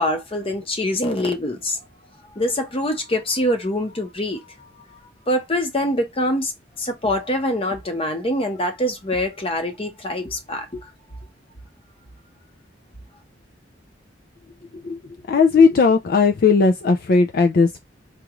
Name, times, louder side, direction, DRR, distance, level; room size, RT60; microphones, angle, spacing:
voice 1, 0.0-1.8 2.4-4.5 5.3-6.5 6.8-10.9, left 1 dB, 30° left, 0.9 m, -24 dB
voice 2, 15.3-17.8, left 4 dB, 55° left, 0.4 m, -16 dB
4.8 x 2.5 x 3.0 m
head